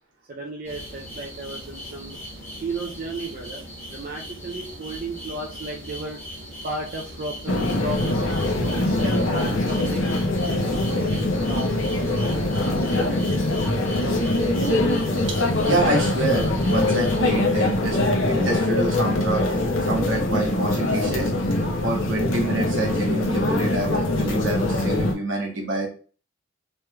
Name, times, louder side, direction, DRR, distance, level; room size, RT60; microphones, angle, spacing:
voice 1, 0.3-2.2 2.6-10.1 10.5-12.5 12.8-13.2, right 2 dB, 45° right, 0 dB, 0.4 m, -35 dB
sound 1, 0.6-17.2, equal, 15° left, 1.2 m, -39 dB
sound 2, 7.5-25.1, left 1 dB, 75° left, 0.6 m, -23 dB
voice 2, 15.3-18.0 18.3-19.5 19.9-21.3 21.8-25.9, right 2 dB, 75° right, -1 dB, 1.1 m, -26 dB
3.1 x 3.1 x 2.3 m, 0.40 s
head